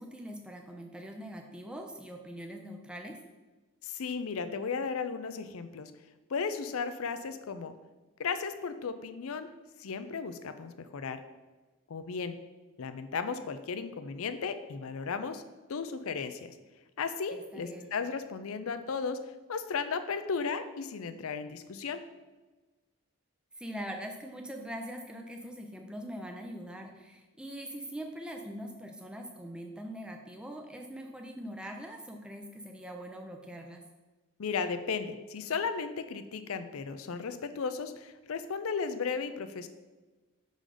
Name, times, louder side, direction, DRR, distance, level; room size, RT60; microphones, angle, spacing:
voice 1, 0.0-3.2 17.3-17.9 23.6-33.8, equal, 5° right, 3 dB, 0.5 m, -42 dB
voice 2, 3.8-5.9 6.3-7.7 8.2-9.5 9.8-11.2 11.9-12.4 12.8-15.4 15.7-16.5 17.0-19.2 19.5-22.0 34.4-39.7, left 5 dB, 75° left, 10 dB, 0.5 m, -35 dB
6.4 x 3.9 x 4.9 m, 1.2 s
head